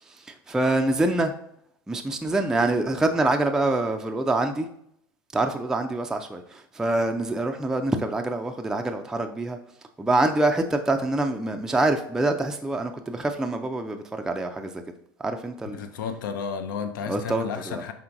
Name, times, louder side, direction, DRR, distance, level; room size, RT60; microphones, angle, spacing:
voice 1, 0.1-1.3 1.9-4.7 5.3-9.6 10.0-14.8 15.2-15.8 17.1-17.8, right 2 dB, 5° right, 4 dB, 0.4 m, -25 dB
voice 2, 15.7-17.9, left 6 dB, 65° left, 8 dB, 0.6 m, -32 dB
5.6 x 3.6 x 2.5 m, 0.71 s
figure-of-eight pair, 80°, 11 cm